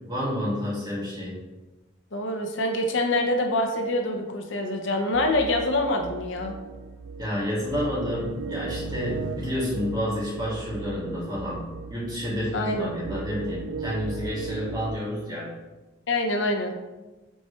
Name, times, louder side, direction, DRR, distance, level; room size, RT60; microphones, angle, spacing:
voice 1, 0.1-1.4 7.2-15.5, equal, 20° right, -7 dB, 2.1 m, -30 dB
voice 2, 2.1-6.5 12.5-12.9 16.1-16.7, left 1 dB, 65° left, 3 dB, 0.8 m, -25 dB
sound 1, 5.1-15.0, right 4 dB, 60° right, 0.4 m, -37 dB
7.8 x 4.6 x 3.2 m, 1.1 s
head